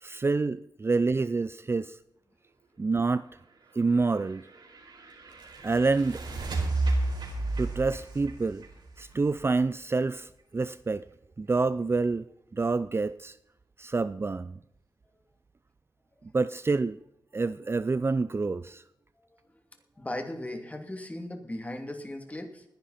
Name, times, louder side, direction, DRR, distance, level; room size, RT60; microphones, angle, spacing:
voice 1, 0.0-2.0 2.8-3.3 3.7-4.5 5.6-6.2 7.6-8.6 9.0-11.0 11.4-12.3 12.5-13.3 13.8-14.6 16.3-17.0 17.3-18.8, right 3 dB, 30° right, 0.5 m, -27 dB
sound 1, 3.9-9.7, right 2 dB, 70° right, 4.8 m, -32 dB
voice 2, 20.0-22.6, left 1 dB, 20° left, 2.8 m, -37 dB
20.0 x 10.5 x 4.3 m
cardioid pair, 75°, 8 cm